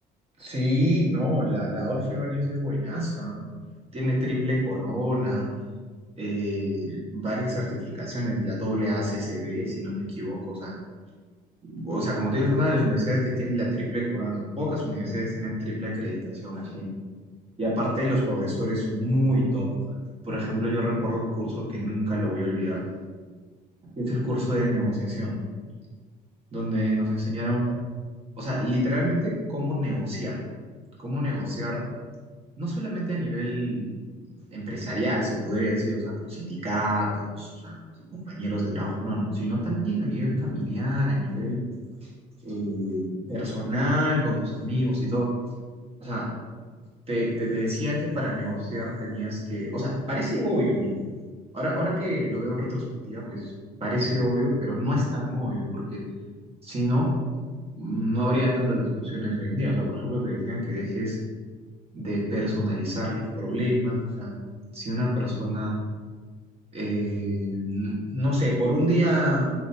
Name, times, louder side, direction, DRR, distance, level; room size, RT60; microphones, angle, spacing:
voice 1, 0.4-3.4 3.9-5.4 6.2-10.7 11.6-16.9 17.6-19.7 20.2-22.8 23.8-25.3 26.5-27.6 28.4-30.4 31.0-31.8 32.6-33.9 34.5-36.0 36.3-37.7 38.1-41.6 42.4-45.3 46.0-46.3 47.1-50.9 51.5-53.5 53.8-56.0 56.6-57.1 57.7-61.2 61.9-64.3 64.7-65.7 66.7-69.5, equal, 35° right, -5 dB, 1.3 m, -27 dB
3.9 x 2.9 x 2.6 m, 1.5 s
cardioid pair, 110°, 17 cm